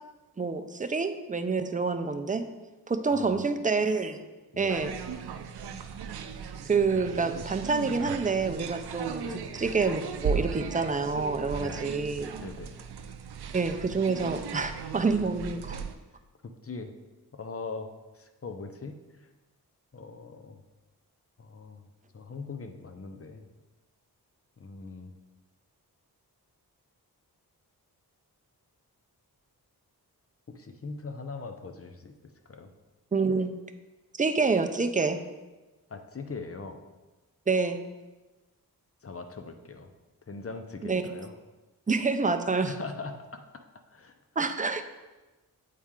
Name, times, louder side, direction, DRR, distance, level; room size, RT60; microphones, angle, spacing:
voice 1, 0.4-2.4 2.9-4.2 4.6-4.9 6.6-9.2 9.6-12.3 13.5-15.8 33.1-33.5 34.2-35.2 37.5-37.8 40.8-41.0 41.9-42.7 44.4-44.8, right 4 dB, 20° right, 8 dB, 0.5 m, -27 dB
voice 2, 3.1-3.5 4.5-4.9 9.2-9.5 11.6-12.0 12.4-12.8 16.6-16.9 17.3-19.3 19.9-20.6 21.4-21.9 22.1-23.4 24.6-25.1 30.5-32.7 35.9-36.8 39.0-39.9 40.3-41.3 42.6-43.4 43.9-44.1, left 4 dB, 35° left, 6 dB, 0.7 m, -41 dB
sound 1, 4.7-15.9, right 6 dB, 75° right, 0.6 m, -37 dB
8.4 x 4.2 x 3.7 m, 1.2 s
cardioid pair, 60°, 39 cm